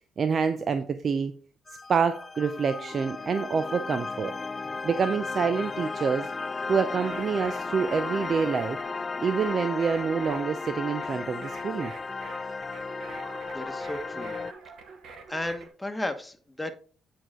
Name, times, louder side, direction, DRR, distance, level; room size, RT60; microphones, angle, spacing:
voice 1, 0.2-1.3 1.9-4.3 4.8-6.3 6.7-8.8 9.2-11.9, right 6 dB, 45° right, 0.5 m, -27 dB
sound 1, 1.7-14.5, left 4 dB, 30° left, 0.3 m, -35 dB
sound 2, 7.0-15.7, right 4 dB, 75° right, 1.2 m, -46 dB
voice 2, 13.5-14.3 15.3-16.7, left 1 dB, 10° left, 1.1 m, -34 dB
8.6 x 4.7 x 3.7 m
cardioid pair, 90°, 0 cm